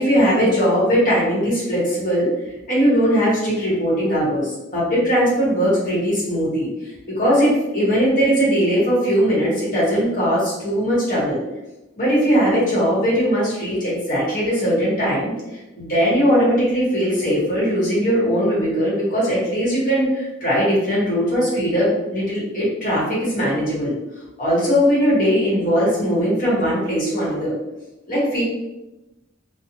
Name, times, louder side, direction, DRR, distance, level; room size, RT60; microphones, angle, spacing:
voice 1, 0.0-2.3 2.7-6.7 7.1-11.4 12.0-15.3 15.8-23.9 24.4-27.5 28.1-28.4, equal, 45° left, -7 dB, 1.1 m, -19 dB
2.5 x 2.0 x 2.8 m, 0.98 s
head